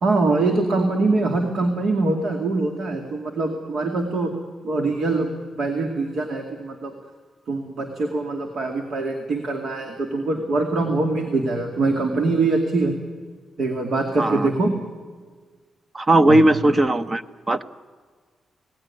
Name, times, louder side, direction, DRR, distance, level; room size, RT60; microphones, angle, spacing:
voice 1, 0.0-4.3 4.6-6.9 7.5-12.9 13.6-14.7 16.3-16.4, right 3 dB, 65° right, 3 dB, 2.3 m, -23 dB
voice 2, 14.2-14.5 15.9-17.2 17.5-17.7, right 1 dB, 25° right, 12 dB, 0.8 m, -17 dB
26.5 x 18.5 x 9.7 m, 1.5 s
wide cardioid pair, 135°, 0 cm